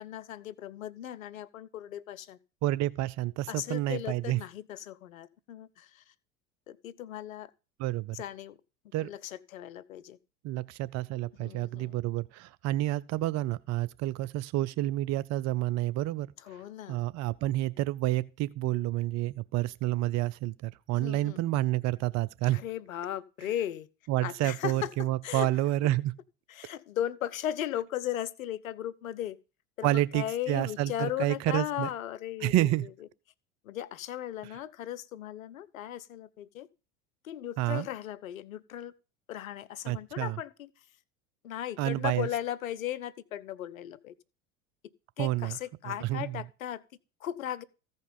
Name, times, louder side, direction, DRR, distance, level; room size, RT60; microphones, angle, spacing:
voice 1, 0.0-2.4 3.5-6.1 6.7-7.5 8.1-8.6 9.0-10.2 11.4-12.0 16.4-17.0 20.9-21.4 22.5-23.9 24.2-25.5 26.5-29.4 29.8-32.9 33.6-36.7 37.2-38.9 39.3-40.7 41.4-44.1 45.2-46.8 47.2-47.6, left 12 dB, 80° left, 0.7 m, -37 dB
voice 2, 2.6-4.4 7.8-8.2 8.9-9.1 10.4-16.3 16.9-22.6 24.1-26.1 29.8-31.9 32.4-32.9 37.6-37.9 39.9-40.4 41.8-42.3 45.2-45.6 46.1-46.4, right 15 dB, 40° right, 0.5 m, -29 dB
14.5 x 5.3 x 5.2 m
hypercardioid pair, 80°, 40 cm